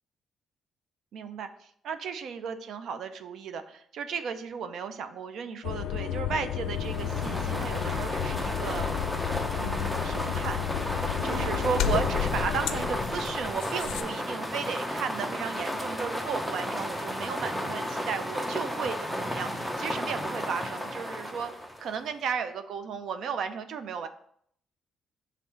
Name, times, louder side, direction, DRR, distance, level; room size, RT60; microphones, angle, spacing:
voice 1, 1.1-8.9 9.6-10.6 11.1-21.5 21.8-24.1, right 6 dB, 70° right, 10 dB, 0.6 m, -35 dB
sound 1, 5.6-14.0, left 10 dB, 85° left, 0.4 m, -32 dB
sound 2, 6.7-22.1, equal, ahead, 0.8 m, -33 dB
sound 3, 11.2-13.6, right 2 dB, 45° right, 1.4 m, -42 dB
5.5 x 3.7 x 5.7 m, 0.66 s
cardioid pair, 90°, 0 cm